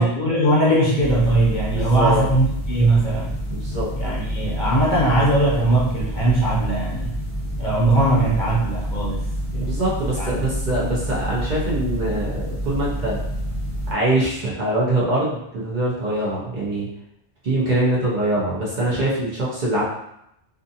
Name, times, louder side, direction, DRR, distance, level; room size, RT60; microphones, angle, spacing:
voice 1, 0.0-3.4 4.0-7.1 7.6-9.7 10.2-10.3, right 2 dB, 55° left, -5 dB, 0.6 m, -20 dB
sound 1, 1.0-13.9, equal, 5° right, 1.0 m, -28 dB
voice 2, 1.7-2.2 3.5-3.9 9.6-13.2 13.9-16.9 17.4-19.8, right 1 dB, 50° right, -6 dB, 0.7 m, -23 dB
2.5 x 2.5 x 2.7 m, 0.79 s
omnidirectional pair, 1.2 m